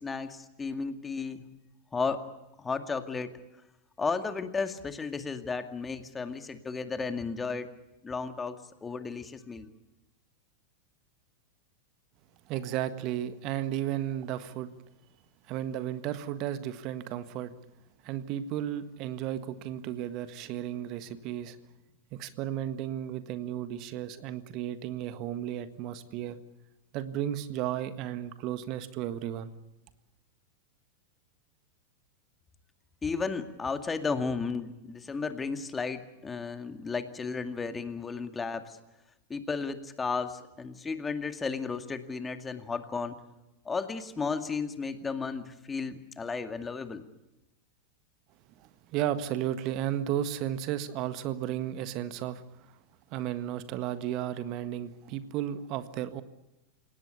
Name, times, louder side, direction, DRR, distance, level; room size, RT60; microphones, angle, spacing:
voice 1, 0.0-1.4 1.9-2.2 2.6-3.4 4.0-7.7 8.0-9.7 33.0-38.8 39.3-43.2 43.7-47.0, left 4 dB, 15° left, 8 dB, 2.2 m, -34 dB
voice 2, 12.5-14.7 15.5-17.5 18.0-21.6 22.1-26.4 26.9-29.5 48.6-52.7 53.1-56.2, right 11 dB, 40° right, 12 dB, 1.6 m, -34 dB
29.0 x 17.5 x 8.4 m, 0.97 s
figure-of-eight pair, 90°, 0 cm